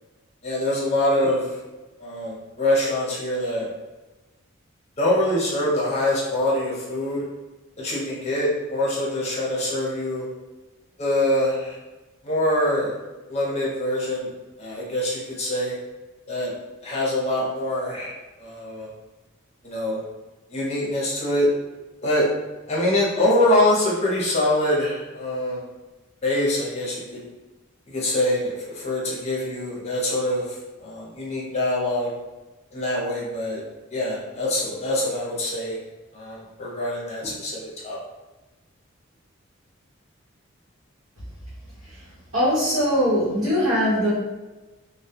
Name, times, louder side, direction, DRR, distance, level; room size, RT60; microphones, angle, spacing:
voice 1, 0.4-1.6 2.0-3.7 5.0-7.2 7.8-10.2 11.0-11.8 12.2-13.0 13.3-14.3 14.6-15.7 16.3-16.5 16.8-18.1 18.4-18.9 19.6-20.0 20.5-21.5 22.0-22.3 22.7-25.6 26.2-27.2 27.9-32.1 32.7-33.6 33.9-35.8 36.1-38.0, left 1 dB, 30° left, -5 dB, 0.6 m, -24 dB
voice 2, 42.3-44.1, equal, 85° right, -11 dB, 0.9 m, -21 dB
2.2 x 2.0 x 2.7 m, 1.1 s
head